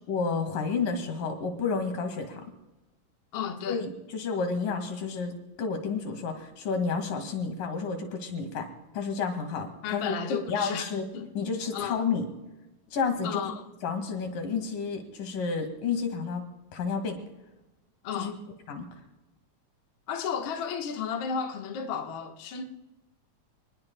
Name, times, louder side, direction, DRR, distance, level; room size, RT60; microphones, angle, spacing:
voice 1, 0.1-2.4 3.7-8.7 8.9-10.2 10.5-11.1 11.4-12.3 12.9-13.5 13.8-16.4 16.7-17.2 18.2-18.3 18.7-18.9, left 5 dB, 85° left, 3.6 m, -30 dB
voice 2, 3.3-3.9 9.8-11.3 11.7-12.0 13.2-13.6 18.0-18.4 20.1-22.6, left 7 dB, 50° left, 1.6 m, -33 dB
28.5 x 20.0 x 2.3 m
omnidirectional pair, 3.7 m